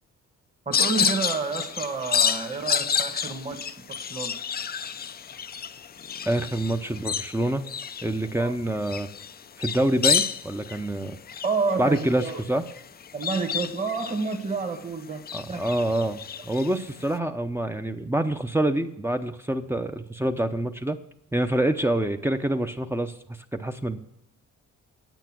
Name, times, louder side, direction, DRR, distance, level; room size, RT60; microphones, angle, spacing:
voice 1, 0.6-4.3 8.4-8.5 11.4-12.4 13.1-15.6, right 4 dB, 25° right, 4 dB, 1.5 m, -29 dB
sound 1, 0.7-14.8 15.2-17.1, left 7 dB, 30° left, 0.5 m, -30 dB
voice 2, 6.2-7.7 8.0-9.1 9.6-11.2 11.8-12.6 15.3-21.0 21.3-23.1 23.5-24.0, right 1 dB, 10° right, 6 dB, 0.7 m, -26 dB
9.1 x 8.3 x 6.1 m, 0.79 s
cardioid pair, 90°, 30 cm